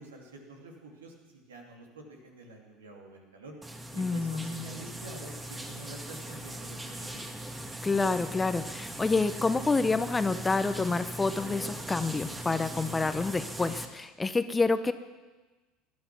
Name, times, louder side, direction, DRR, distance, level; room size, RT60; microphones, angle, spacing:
voice 1, 0.0-3.5 3.9-7.2, right 2 dB, 80° right, 1 dB, 2.7 m, -47 dB
sound 1, 3.6-13.9, right 1 dB, 15° right, 1.8 m, -40 dB
voice 2, 4.0-4.6 7.8-14.9, left 3 dB, 15° left, 12 dB, 0.9 m, -28 dB
19.0 x 12.0 x 6.2 m, 1.2 s
figure-of-eight pair, 65°, 0 cm